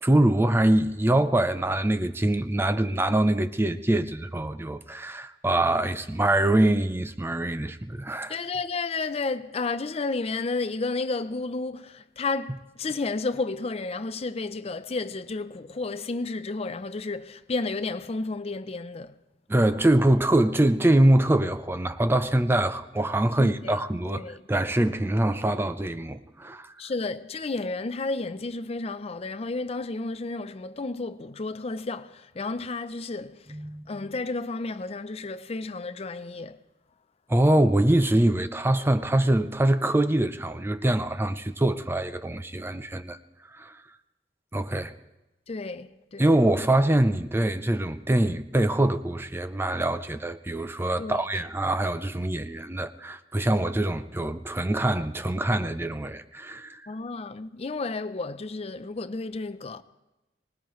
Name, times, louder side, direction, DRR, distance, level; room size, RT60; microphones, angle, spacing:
voice 1, 0.0-8.4 19.5-26.7 33.5-33.8 37.3-43.2 43.6-43.7 44.5-44.9 46.2-56.8, right 1 dB, 15° right, 0.5 m, -24 dB
voice 2, 8.3-19.1 23.4-23.7 24.1-24.4 26.8-33.5 33.9-36.6 45.5-46.3 51.0-51.2 56.9-59.8, left 3 dB, 35° left, 0.5 m, -32 dB
24.0 x 19.0 x 3.1 m
head